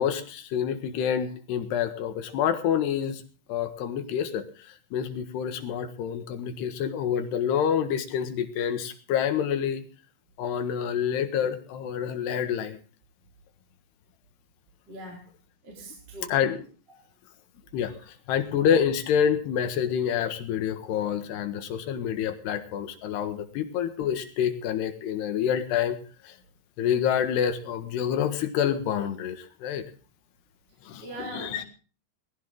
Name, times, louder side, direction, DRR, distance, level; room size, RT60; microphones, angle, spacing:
voice 1, 0.0-3.2 3.5-4.4 4.9-9.8 10.4-12.8 16.3-16.6 17.7-17.9 18.3-26.0 26.3-26.4 26.8-29.8 30.9-31.6, left 8 dB, 90° left, 9 dB, 3.7 m, -27 dB
voice 2, 14.9-15.3 15.6-16.4 16.9-17.0 17.8-18.1 31.0-31.6, right 1 dB, 25° right, 0 dB, 4.3 m, -41 dB
19.0 x 16.0 x 3.8 m, 0.38 s
omnidirectional pair, 4.6 m